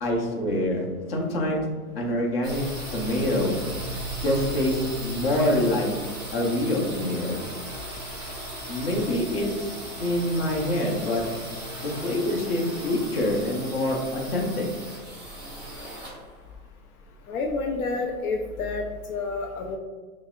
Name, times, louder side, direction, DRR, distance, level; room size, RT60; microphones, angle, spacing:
voice 1, 0.0-1.6 1.9-2.6 2.9-3.6 4.2-5.9 6.3-7.4 8.7-9.7 10.0-11.2 11.8-14.7, left 1 dB, 40° left, -1 dB, 0.8 m, -25 dB
sound 1, 2.4-18.1, right 1 dB, 10° right, 1.2 m, -37 dB
voice 2, 17.3-19.8, left 3 dB, 70° left, 2 dB, 0.5 m, -29 dB
5.4 x 2.0 x 2.4 m, 1.4 s
hypercardioid pair, 150°, 45 cm